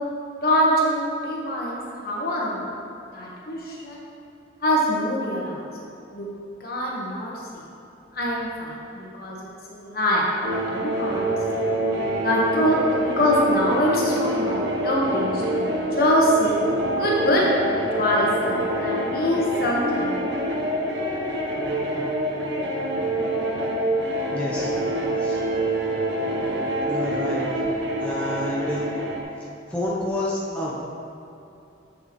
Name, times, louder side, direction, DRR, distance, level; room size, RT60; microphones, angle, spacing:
voice 1, 0.4-2.6 3.1-4.0 4.6-5.6 6.1-6.3 6.6-7.6 8.1-11.6 12.2-16.5 17.0-17.5 17.9-20.2, equal, 55° left, -4 dB, 1.3 m, -24 dB
sound 1, 10.4-29.2, right 1 dB, 75° right, 0.8 m, -26 dB
voice 2, 24.3-24.7 25.2-25.4 26.8-27.5 28.0-28.9 29.7-30.8, left 1 dB, 5° left, -6 dB, 0.7 m, -29 dB
7.6 x 6.5 x 3.1 m, 2.7 s
head